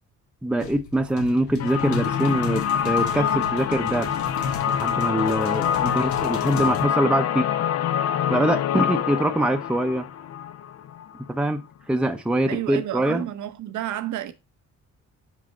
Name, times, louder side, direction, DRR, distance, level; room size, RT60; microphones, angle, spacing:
voice 1, 0.4-4.1 4.7-7.5 8.3-10.1 11.3-11.6 11.9-13.3, right 1 dB, 5° right, 0.6 m, -24 dB
sound 1, 0.6-6.9, left 5 dB, 75° left, 1.3 m, -35 dB
sound 2, 1.6-11.3, left 9 dB, 55° left, 0.5 m, -25 dB
voice 2, 12.5-14.3, right 12 dB, 75° right, 0.9 m, -30 dB
5.4 x 5.1 x 4.2 m
cardioid pair, 90°, 30 cm